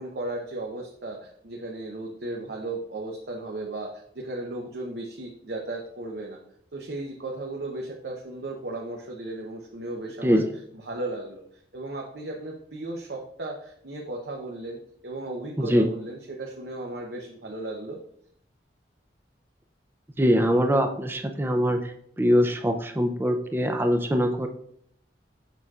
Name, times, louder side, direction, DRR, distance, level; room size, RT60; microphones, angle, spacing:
voice 1, 0.0-6.4 6.7-10.4 10.7-18.0, right 2 dB, 65° right, 0 dB, 0.7 m, -35 dB
voice 2, 20.2-21.9 22.2-24.5, equal, 10° right, 5 dB, 0.4 m, -22 dB
6.8 x 6.1 x 2.4 m, 0.69 s
head